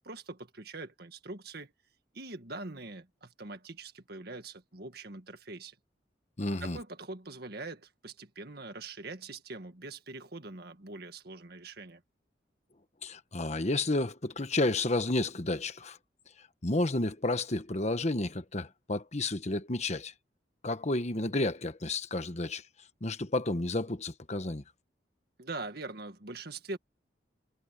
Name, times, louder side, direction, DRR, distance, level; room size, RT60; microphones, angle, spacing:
voice 1, 0.0-1.7 2.1-5.8 6.6-12.0 25.4-26.8, right 3 dB, 60° right, 1.9 m, -43 dB
voice 2, 6.4-6.8 13.0-16.0 16.6-20.1 20.6-22.6 23.0-24.6, left 2 dB, 40° left, 1.2 m, -31 dB
head